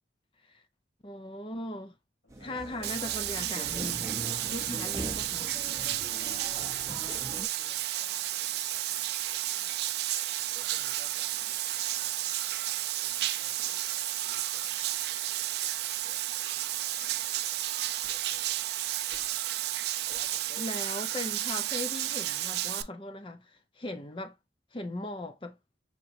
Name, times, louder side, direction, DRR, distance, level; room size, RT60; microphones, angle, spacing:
voice 1, 1.0-2.0 2.4-4.1 4.5-5.5 20.6-24.4 24.7-25.6, left 1 dB, 30° left, 0.6 m, -39 dB
voice 2, 2.2-2.6 4.4-4.8 6.2-10.0 10.5-15.5 16.0-16.2 16.5-17.7 18.1-18.6 20.0-20.7, left 2 dB, 85° left, 2.3 m, -57 dB
sound 1, 2.3-7.5, right 1 dB, 20° right, 0.7 m, -41 dB
Bathtub (filling or washing), 2.8-22.8, right 14 dB, 60° right, 0.3 m, -32 dB
sound 2, 7.1-7.3 8.6-8.9 10.2-10.6 11.7-12.6 13.7-14.0 14.6-14.9 15.6-15.9 17.0-17.2 18.0-18.3 19.1-19.4 20.1-20.3 21.1-21.7, left 3 dB, 70° left, 1.4 m, -51 dB
5.9 x 2.9 x 2.6 m
head